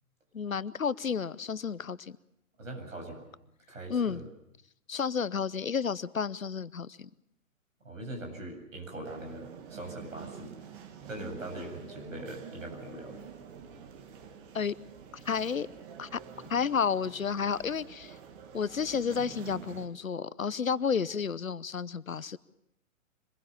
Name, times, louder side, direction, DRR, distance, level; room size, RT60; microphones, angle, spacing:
voice 1, 0.3-2.2 3.9-4.2 4.9-7.1 14.5-14.7 15.3-15.7 16.0-16.2 16.5-18.2 18.5-22.4, left 6 dB, 80° left, 19 dB, 0.8 m, -31 dB
voice 2, 2.6-3.3 3.7-4.3 7.8-10.5 11.1-13.2, right 1 dB, 70° right, 3 dB, 8.0 m, -41 dB
sound 1, 9.0-19.9, right 7 dB, 40° right, 2.4 m, -48 dB
25.5 x 21.0 x 7.0 m, 0.82 s
figure-of-eight pair, 115°, 41 cm